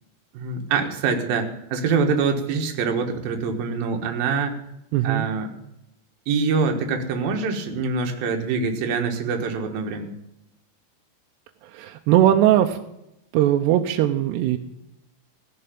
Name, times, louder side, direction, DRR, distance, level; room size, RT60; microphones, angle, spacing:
voice 1, 0.3-4.6 5.0-5.5 6.3-10.1, right 5 dB, 60° right, 3 dB, 2.9 m, -24 dB
voice 2, 4.9-5.3 11.7-12.8 13.3-14.6, right 12 dB, 80° right, 5 dB, 2.7 m, -19 dB
15.5 x 6.9 x 8.8 m, 0.83 s
omnidirectional pair, 5.2 m